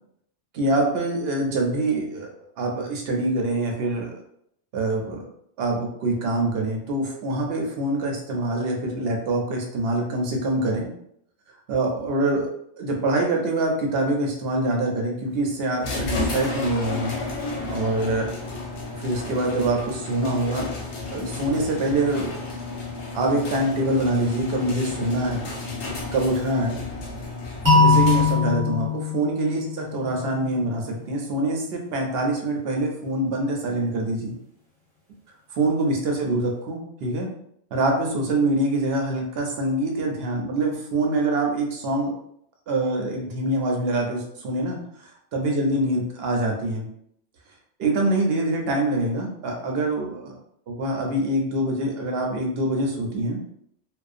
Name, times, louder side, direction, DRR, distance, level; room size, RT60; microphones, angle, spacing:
voice 1, 0.5-2.3 2.6-4.1 4.7-5.2 5.6-10.9 11.7-12.5 12.8-17.2 17.7-18.3 18.9-20.7 21.1-22.3 23.1-25.5 26.1-26.8 27.7-34.4 35.5-37.3 37.7-42.1 42.7-46.9 47.8-50.4 50.7-53.4, right 2 dB, 65° right, 1 dB, 0.7 m, -25 dB
sound 1, 15.8-28.6, left 3 dB, 75° left, 0.9 m, -32 dB
sound 2, 27.6-30.6, left 4 dB, 30° right, 0.8 m, -21 dB
2.5 x 2.1 x 2.4 m, 0.71 s
omnidirectional pair, 1.1 m